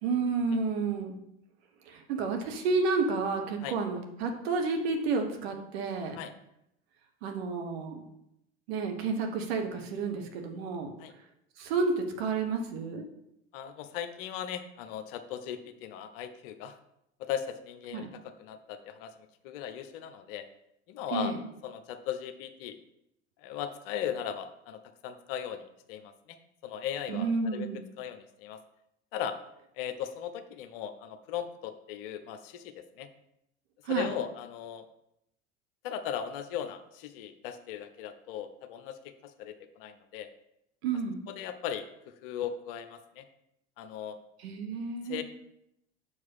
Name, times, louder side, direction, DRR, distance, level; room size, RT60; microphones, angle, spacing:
voice 1, 0.0-1.2 1.9-6.2 7.2-8.0 8.7-10.9 11.6-13.0 17.9-18.1 21.1-21.4 27.1-27.8 33.8-34.1 40.8-41.2 44.4-45.2, right 4 dB, 60° right, 4 dB, 1.2 m, -30 dB
voice 2, 13.5-16.8 17.2-19.1 19.4-20.4 20.9-21.3 21.6-22.8 23.4-26.1 26.6-27.7 28.0-28.6 29.1-29.4 29.8-33.1 33.9-34.8 35.8-40.3 41.4-43.2 43.8-44.2 45.0-45.2, left 9 dB, 55° left, 10 dB, 0.8 m, -38 dB
6.7 x 4.8 x 5.5 m, 0.80 s
figure-of-eight pair, 70°, 35 cm